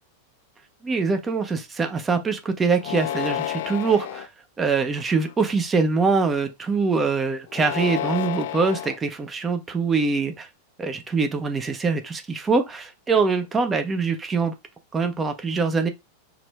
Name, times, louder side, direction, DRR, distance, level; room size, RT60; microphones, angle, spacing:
voice 1, 0.8-4.3 4.6-10.5 10.8-14.5 14.9-15.9, right 4 dB, 15° right, 0.9 m, -23 dB
sound 1, 2.8-4.3 5.0-5.5 7.5-9.0, left 10 dB, 55° left, 0.5 m, -30 dB
4.9 x 3.1 x 3.4 m
figure-of-eight pair, 90°, 0 cm